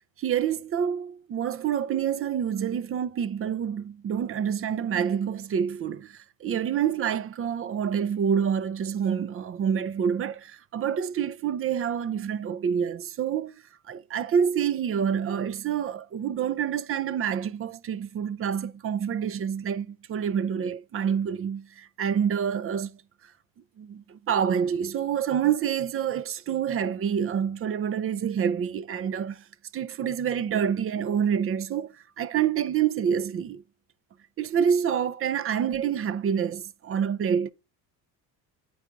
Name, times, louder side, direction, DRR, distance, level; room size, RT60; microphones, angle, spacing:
voice 1, 0.2-13.5 13.9-23.0 23.8-29.4 29.7-33.6 34.4-37.5, right 8 dB, 35° right, 0.4 m, -27 dB
8.0 x 4.7 x 3.7 m
cardioid pair, 105°, 41 cm